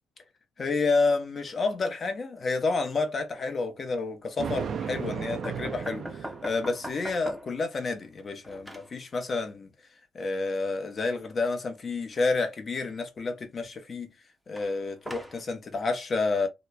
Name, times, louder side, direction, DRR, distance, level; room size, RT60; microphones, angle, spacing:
voice 1, 0.6-9.7 10.1-14.1 14.5-16.5, left 3 dB, 40° left, 0.7 m, -29 dB
Thunder, 4.4-6.9, right 7 dB, 55° right, 0.3 m, -35 dB
sound 1, 5.4-7.6 8.0-8.9 14.6-15.4, right 1 dB, 5° right, 0.6 m, -41 dB
3.0 x 2.1 x 2.2 m
cardioid pair, 90°, 0 cm